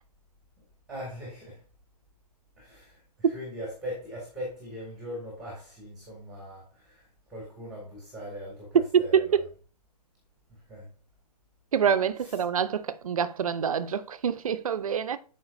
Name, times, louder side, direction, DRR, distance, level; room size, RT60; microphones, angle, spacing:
voice 1, 0.9-1.6 2.6-9.4 10.5-10.9 12.2-12.4, equal, ahead, 2.3 m, -40 dB
voice 2, 8.9-9.4 11.7-15.2, right 7 dB, 60° right, 0.7 m, -26 dB
12.0 x 5.1 x 2.6 m
hypercardioid pair, 165°, 21 cm